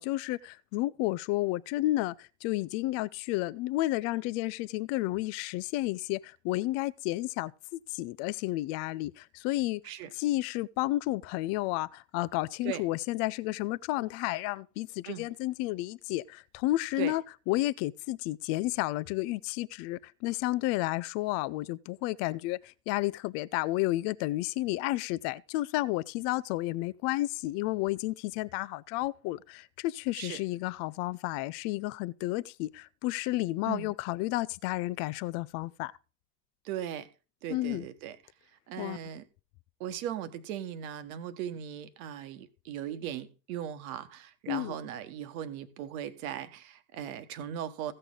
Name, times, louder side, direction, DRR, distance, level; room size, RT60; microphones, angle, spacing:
voice 1, 0.0-9.8 10.1-35.9 37.5-37.9 38.8-39.0 44.5-44.8, left 18 dB, 35° left, 0.4 m, -31 dB
voice 2, 36.6-37.1 37.4-38.2 38.7-39.2 39.8-47.9, right 10 dB, 55° right, 1.3 m, -38 dB
15.5 x 6.6 x 3.8 m
figure-of-eight pair, 80°, 50 cm